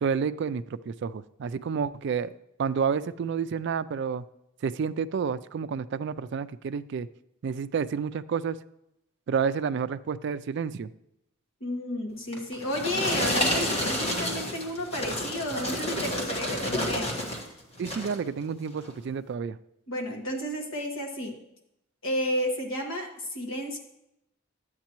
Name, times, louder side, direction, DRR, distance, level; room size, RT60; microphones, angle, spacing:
voice 1, 0.0-2.3 2.6-4.2 4.6-7.1 7.4-8.6 9.3-10.9 17.8-19.6, right 6 dB, 55° right, 13 dB, 0.3 m, -30 dB
voice 2, 11.6-17.1 19.9-21.4 22.0-23.8, equal, 70° left, 1 dB, 1.6 m, -32 dB
sound 1, 12.3-17.5 17.8-18.2 18.8-18.9, equal, 30° left, 1.4 m, -30 dB
11.5 x 8.0 x 3.0 m, 0.82 s
head